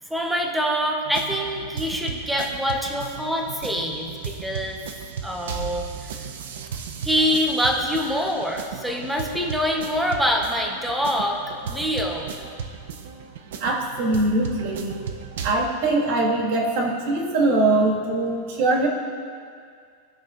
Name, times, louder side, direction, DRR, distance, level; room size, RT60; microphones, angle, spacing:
voice 1, 0.1-4.8 5.2-5.8 7.0-11.4 11.7-12.3, equal, 5° right, 0 dB, 0.9 m, -25 dB
sound 1, 1.1-15.5, right 6 dB, 80° right, 0.7 m, -35 dB
voice 2, 13.6-15.0 15.4-18.9, right 2 dB, 50° right, -1 dB, 1.7 m, -22 dB
18.0 x 6.2 x 2.5 m, 2.2 s
supercardioid pair, 170°, 0 cm